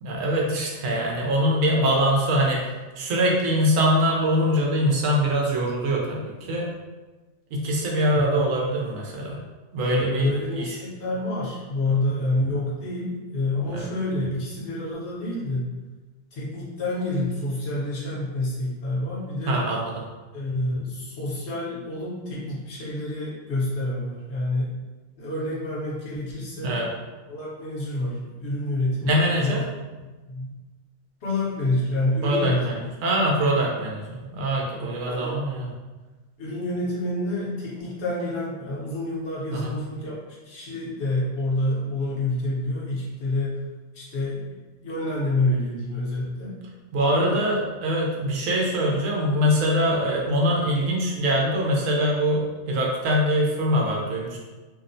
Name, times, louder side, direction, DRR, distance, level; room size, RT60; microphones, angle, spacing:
voice 1, 0.0-2.6 3.0-6.7 7.5-9.4 9.7-10.8 13.7-13.9 19.5-20.0 26.6-26.9 29.0-29.6 32.2-32.7 33.0-35.7 39.5-39.7 46.9-54.4, equal, 90° right, -2 dB, 1.0 m, -23 dB
voice 2, 9.9-15.7 16.3-19.6 20.3-24.8 25.2-26.7 27.3-29.6 30.3-30.5 31.2-32.8 34.7-35.4 36.4-40.2 40.4-43.6 43.9-44.4 44.8-46.5 47.1-47.5, left 1 dB, 60° left, -6 dB, 1.0 m, -28 dB
2.8 x 2.0 x 2.5 m, 1.2 s
omnidirectional pair, 1.3 m